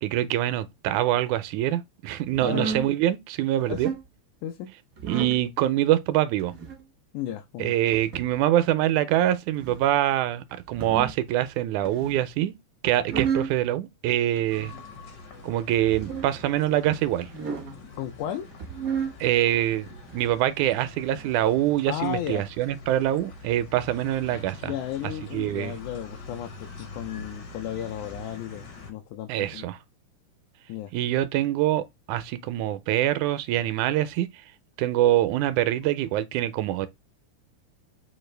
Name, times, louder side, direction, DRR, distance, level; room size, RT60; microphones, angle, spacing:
voice 1, 0.0-3.9 5.0-6.5 7.6-12.5 12.8-14.7 15.4-17.3 19.2-24.7 25.2-25.7 29.3-29.8 30.9-34.3 34.8-36.9, right 13 dB, 85° right, 1.9 m, -25 dB
sound 1, 2.3-2.9 3.6-4.0 5.0-5.4 6.4-6.8 7.9-8.4 9.5-9.9 10.6-11.2 11.8-12.3 12.9-13.6 14.4-14.8 15.7-16.3 17.2-17.8 18.5-19.1 19.9-20.4 21.1-21.3, right 7 dB, 65° right, 0.8 m, -33 dB
voice 2, 2.4-2.8 3.6-3.8 4.4-4.7 7.1-7.8 18.0-18.5 21.9-22.5 24.6-29.6 30.7-30.9, left 11 dB, 85° left, 2.1 m, -34 dB
sound 2, 14.5-28.9, left 3 dB, 65° left, 1.0 m, -45 dB
6.5 x 2.4 x 3.2 m
omnidirectional pair, 3.4 m